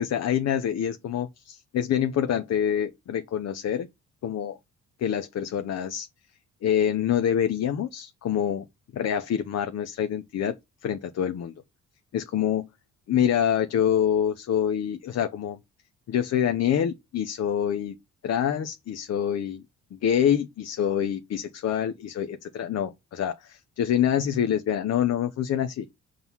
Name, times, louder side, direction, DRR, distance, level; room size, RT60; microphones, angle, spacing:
voice 1, 0.0-3.9 4.2-4.6 5.0-6.1 6.6-8.6 8.9-10.5 10.8-11.5 12.1-12.6 13.1-15.6 16.1-17.9 18.2-19.6 19.9-25.9, left 9 dB, 60° left, 0.7 m, -26 dB
5.5 x 3.8 x 6.0 m
cardioid pair, 90°, 30 cm